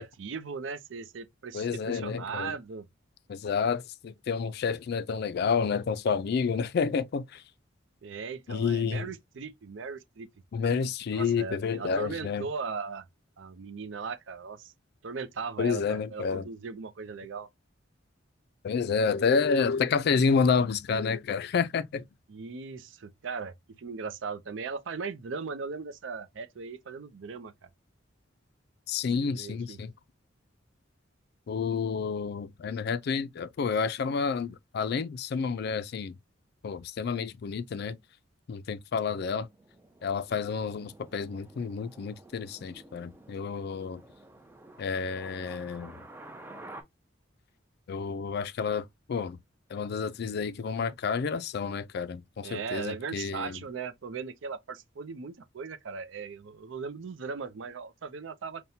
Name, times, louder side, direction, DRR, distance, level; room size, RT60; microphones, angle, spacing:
voice 1, 0.0-2.9 8.0-10.3 10.7-13.1 13.4-14.7 15.0-17.5 22.3-27.7 29.2-29.8 52.4-58.6, right 5 dB, 70° right, 0.5 m, -38 dB
voice 2, 1.5-2.6 3.3-7.4 8.5-9.1 10.5-12.5 15.6-16.4 18.6-22.0 28.9-29.9 31.5-36.2 36.6-38.0 38.5-39.5 40.0-44.0 44.8-46.0 47.9-49.4 49.7-53.6, left 5 dB, 55° left, 0.3 m, -29 dB
sound 1, 39.5-46.8, right 2 dB, 10° right, 0.4 m, -50 dB
5.6 x 2.2 x 2.6 m
head